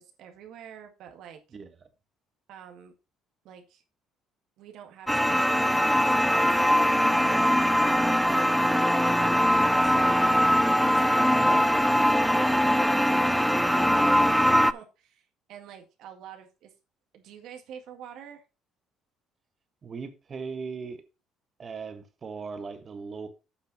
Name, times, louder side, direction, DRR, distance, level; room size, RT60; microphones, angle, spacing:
voice 1, 0.0-1.4 2.5-2.9 3.4-3.8 4.6-5.8 6.1-6.8 7.1-8.7 9.0-10.1 10.9-11.7 12.3-16.7 17.1-18.4, right 8 dB, 65° right, 1.9 m, -47 dB
sound 1, 5.1-14.7, equal, ahead, 0.3 m, -22 dB
voice 2, 11.3-11.8 19.8-21.0 21.6-23.4, right 5 dB, 30° right, 1.3 m, -38 dB
8.5 x 5.7 x 5.3 m
cardioid pair, 160°, 0 cm